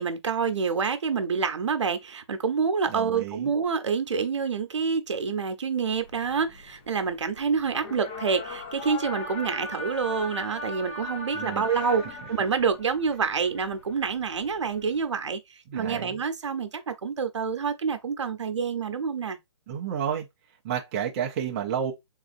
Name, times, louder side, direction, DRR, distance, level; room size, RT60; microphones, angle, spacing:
voice 1, 0.0-15.4 15.7-19.4, right 5 dB, 80° right, 0.8 m, -27 dB
voice 2, 2.9-3.5 11.3-11.8 15.7-16.2 19.7-20.3 20.6-21.9, right 8 dB, 20° right, 0.4 m, -31 dB
sound 1, 5.9-15.0, left 2 dB, 25° left, 0.6 m, -39 dB
3.7 x 2.5 x 2.5 m
hypercardioid pair, 160°, 15 cm